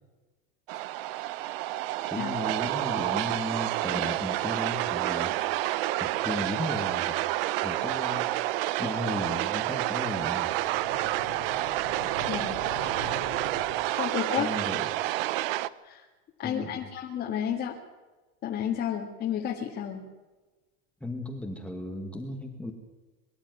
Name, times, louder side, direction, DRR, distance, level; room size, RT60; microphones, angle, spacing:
sound 1, 0.7-15.7, right 16 dB, 65° right, 0.8 m, -29 dB
voice 1, 2.1-5.4 6.0-7.2 7.6-8.3 8.8-10.5 14.4-14.9 16.4-16.9 21.0-22.7, left 1 dB, 5° left, 2 dB, 1.7 m, -35 dB
sound 2, 10.5-14.2, left 6 dB, 80° left, 4.1 m, -43 dB
voice 2, 12.3-12.6 13.9-14.5 15.8-16.0 16.4-17.7 18.4-20.1, left 9 dB, 30° left, -1 dB, 2.1 m, -31 dB
23.0 x 12.5 x 9.4 m, 1.2 s
supercardioid pair, 155°, 31 cm